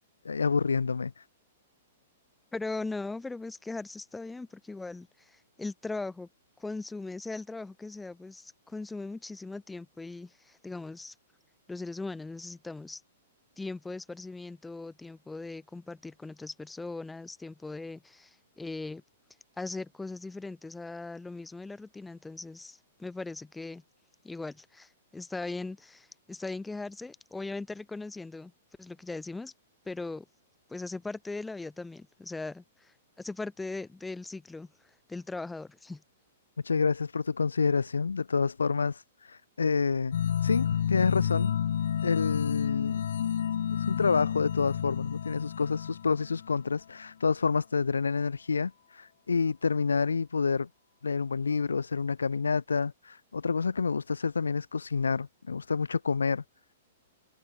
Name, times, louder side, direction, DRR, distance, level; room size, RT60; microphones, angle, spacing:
voice 1, 0.2-1.2 36.6-41.5 42.0-43.0 43.7-50.7 51.0-56.4, left 5 dB, 90° left, 2.1 m, -28 dB
voice 2, 2.5-6.3 6.6-11.1 11.7-13.0 13.6-19.0 19.6-23.8 24.2-28.5 28.8-29.5 29.9-30.3 30.7-36.0, left 3 dB, 5° left, 3.6 m, -39 dB
sound 1, 40.1-46.7, left 9 dB, 70° left, 2.4 m, -30 dB
hypercardioid pair, 120°, 0 cm